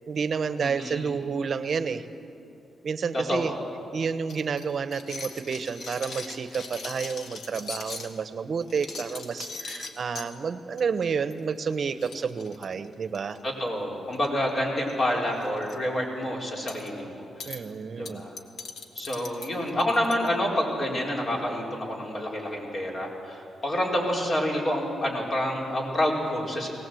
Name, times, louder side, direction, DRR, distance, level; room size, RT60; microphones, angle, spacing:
voice 1, 0.1-2.1 2.8-3.5 3.9-13.4 17.4-18.2, right 5 dB, 50° right, 12 dB, 0.9 m, -30 dB
voice 2, 0.6-1.1 3.1-3.5 13.4-17.3 17.9-18.3 18.9-26.7, left 1 dB, 45° left, -2 dB, 4.6 m, -28 dB
sound 1, 4.3-8.1 8.6-10.3 10.8-11.0 11.3-11.4 11.7-11.8 12.0-13.4 14.1-14.5 14.8-15.0 15.3-15.8 16.7-16.9 17.4-17.6 18.1-20.3, left 4 dB, 65° left, 1.8 m, -40 dB
21.5 x 18.0 x 7.8 m, 2.7 s
cardioid pair, 110°, 0 cm